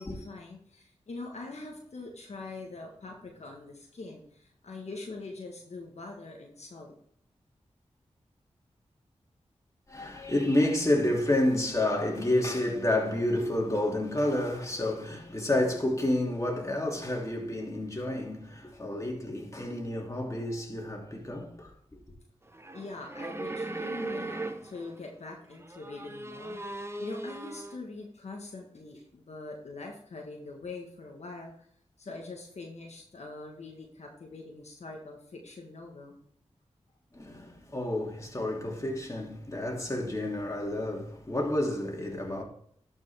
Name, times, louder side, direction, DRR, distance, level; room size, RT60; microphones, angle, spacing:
voice 1, 0.0-6.9 22.7-31.7 32.0-36.2, left 3 dB, 70° left, 1.5 m, -43 dB
voice 2, 9.9-22.0 37.1-42.4, left 1 dB, 25° left, 2.9 m, -29 dB
sound 1, 22.5-25.0 25.5-27.8, right 2 dB, 20° right, 1.1 m, -38 dB
12.0 x 5.4 x 3.5 m
cardioid pair, 45°, 12 cm